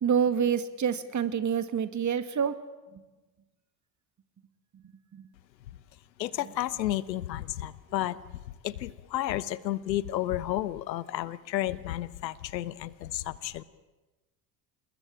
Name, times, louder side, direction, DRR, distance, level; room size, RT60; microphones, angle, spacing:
voice 1, 0.0-2.6 5.1-5.3, right 7 dB, 35° right, 11 dB, 2.2 m, -27 dB
voice 2, 6.2-8.2 8.6-13.6, left 13 dB, 80° left, 19 dB, 1.1 m, -32 dB
27.5 x 21.0 x 8.9 m, 1.2 s
figure-of-eight pair, 60°, 50 cm